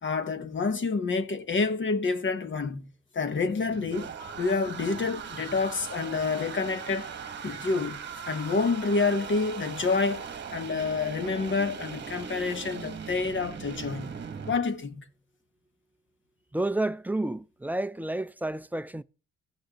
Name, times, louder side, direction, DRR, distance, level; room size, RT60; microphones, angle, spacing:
voice 1, 0.0-2.9 3.1-4.1 4.3-7.1 7.4-14.2 14.5-15.1, left 4 dB, 40° left, 1.1 m, -28 dB
sound 1, 3.3-14.6, right 6 dB, 35° right, 1.3 m, -39 dB
voice 2, 16.5-19.0, right 2 dB, 5° right, 0.3 m, -30 dB
16.0 x 6.4 x 2.9 m
cardioid pair, 90°, 30 cm